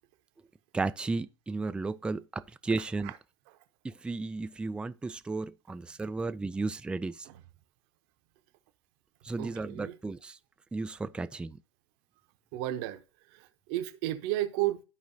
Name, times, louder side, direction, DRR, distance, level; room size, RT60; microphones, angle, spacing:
voice 1, 0.7-3.1 3.8-7.3 9.2-10.4 10.7-11.6, right 3 dB, 5° right, 0.4 m, -34 dB
voice 2, 9.4-10.0 12.5-14.8, right 15 dB, 50° right, 0.9 m, -33 dB
12.5 x 4.9 x 2.8 m
figure-of-eight pair, 85°, 15 cm